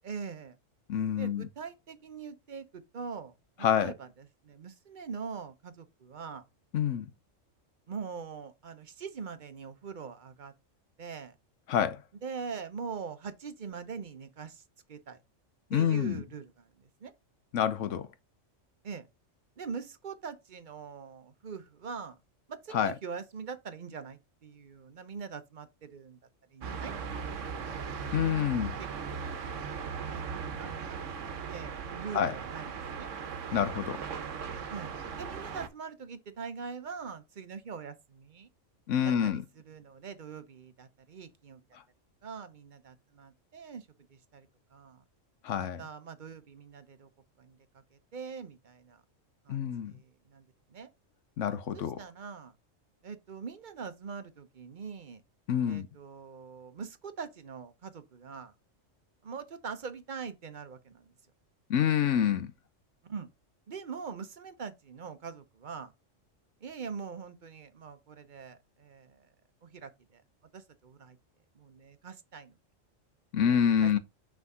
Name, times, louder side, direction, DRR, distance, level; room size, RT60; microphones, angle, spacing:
voice 1, 0.0-0.6 1.2-6.4 7.9-10.5 11.0-11.3 12.2-14.6 14.9-15.2 15.7-17.1 18.8-19.1 19.6-22.2 22.5-26.2 26.5-26.9 27.2-27.8 28.5-29.2 30.1-33.1 34.7-38.5 39.0-39.4 39.7-41.6 42.2-45.0 45.8-47.1 47.4-49.0 49.4-50.9 51.7-52.5 53.0-55.2 55.7-58.5 59.2-61.1 63.1-63.3 63.7-65.9 66.6-69.3 69.6-70.2 70.5-71.2 71.5-72.5 73.4-74.0, right 5 dB, 45° right, 0.9 m, -43 dB
voice 2, 0.9-1.5 3.6-3.9 6.7-7.1 11.7-12.0 15.7-16.2 17.5-18.1 22.7-22.9 28.1-28.8 32.1-32.3 33.5-34.0 38.9-39.4 45.4-45.8 49.5-49.9 51.4-52.0 55.5-55.9 61.7-62.5 73.3-74.0, left 8 dB, 75° left, 1.1 m, -27 dB
sound 1, 26.6-35.7, right 6 dB, 75° right, 1.2 m, -38 dB
6.0 x 3.6 x 5.5 m
omnidirectional pair, 1.3 m